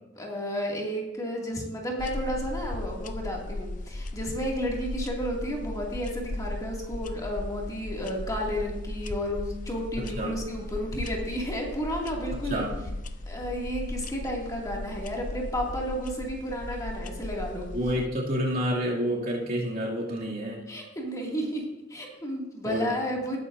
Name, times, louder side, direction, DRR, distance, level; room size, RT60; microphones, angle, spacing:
voice 1, 0.2-12.6 13.3-17.7 20.7-21.6 21.9-23.4, equal, 20° left, -2 dB, 2.3 m, -32 dB
sound 1, 2.0-18.0, left 1 dB, 40° left, 0.6 m, -36 dB
voice 2, 10.0-10.4 12.3-12.8 17.7-20.7 22.6-22.9, equal, 50° right, -4 dB, 2.5 m, -29 dB
19.0 x 9.6 x 2.6 m, 0.96 s
head